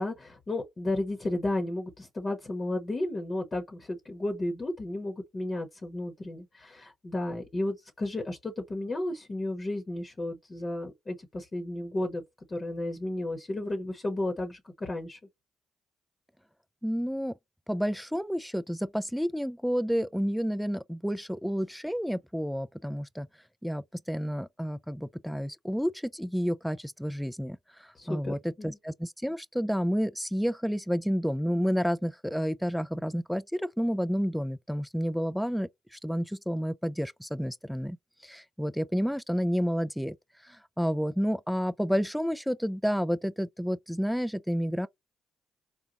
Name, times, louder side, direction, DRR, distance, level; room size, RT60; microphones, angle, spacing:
voice 1, 0.0-12.2 12.5-15.2 27.9-28.8, left 1 dB, 40° left, 1.0 m, -33 dB
voice 2, 16.8-17.3 17.7-23.3 23.6-38.0 38.2-40.2 40.4-44.9, equal, ahead, 0.4 m, -30 dB
3.9 x 2.2 x 2.9 m
hypercardioid pair, 45°, 0 cm